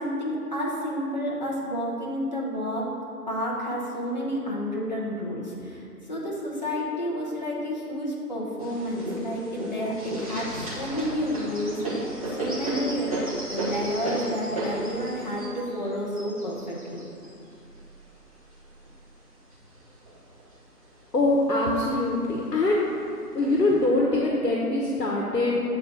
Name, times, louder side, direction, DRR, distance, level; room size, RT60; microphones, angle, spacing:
voice 1, 0.0-2.9 3.3-5.8 6.1-13.2 13.5-17.0, equal, 30° left, -5 dB, 0.9 m, -30 dB
sound 1, 8.6-18.9 19.5-20.5 20.9-21.0 21.2-21.9 22.7-22.8 23.4-23.9, right 1 dB, 20° right, 1.1 m, -34 dB
voice 2, 21.1-22.9 23.3-25.7, left 2 dB, 80° left, -2 dB, 1.2 m, -23 dB
8.7 x 3.9 x 5.9 m, 2.6 s
figure-of-eight pair, 160°, 48 cm